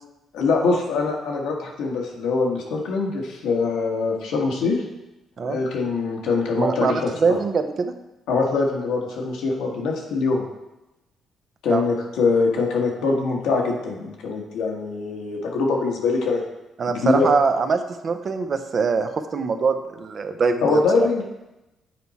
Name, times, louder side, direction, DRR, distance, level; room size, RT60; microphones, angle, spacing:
voice 1, 0.3-4.8 5.4-7.4 8.3-10.4 11.6-16.4 16.9-17.3 20.6-21.2, left 4 dB, 90° left, 0 dB, 1.3 m, -23 dB
voice 2, 6.6-7.9 11.7-11.9 16.8-21.1, right 5 dB, 50° right, 8 dB, 0.6 m, -23 dB
7.6 x 4.6 x 4.1 m, 0.97 s
cardioid pair, 90°, 0 cm